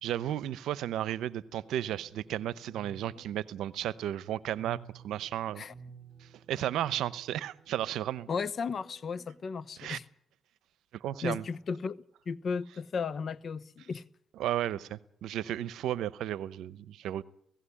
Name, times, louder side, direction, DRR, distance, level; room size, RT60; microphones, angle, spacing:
voice 1, 0.0-4.8 5.0-5.6 6.2-8.3 9.8-10.0 10.9-11.4 14.4-17.2, right 12 dB, 80° right, 0.8 m, -34 dB
sound 1, 1.6-9.6, right 5 dB, 15° right, 5.6 m, -55 dB
voice 2, 8.3-10.0 11.2-14.0, left 5 dB, 50° left, 0.9 m, -35 dB
17.0 x 16.5 x 9.9 m
cardioid pair, 90°, 0 cm